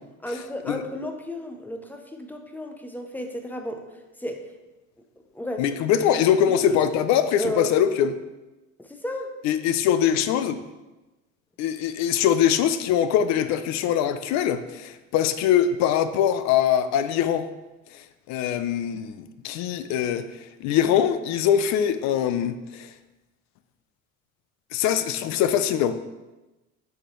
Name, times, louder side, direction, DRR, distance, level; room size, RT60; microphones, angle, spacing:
voice 1, 0.2-3.9 4.2-4.5 5.3-5.7 6.6-7.0 7.4-7.7 8.8-9.3, left 1 dB, 5° left, 4 dB, 0.4 m, -32 dB
voice 2, 5.6-8.1 9.4-10.6 11.6-17.5 17.9-18.0 18.3-22.9 24.7-26.0, left 9 dB, 65° left, 11 dB, 0.5 m, -23 dB
6.5 x 4.9 x 3.1 m, 1.1 s
cardioid pair, 145°, 30 cm